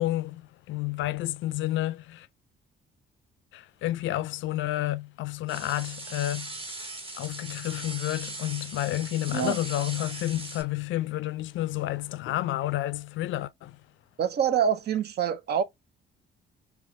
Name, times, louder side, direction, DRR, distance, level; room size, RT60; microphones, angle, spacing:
voice 1, 0.0-2.3 3.5-6.5 7.2-13.8, left 15 dB, 75° left, 0.4 m, -30 dB
sound 1, 5.5-10.6, right 2 dB, 30° right, 1.3 m, -39 dB
voice 2, 14.2-15.6, right 8 dB, 55° right, 0.6 m, -25 dB
3.4 x 3.0 x 2.6 m
cardioid pair, 90°, 20 cm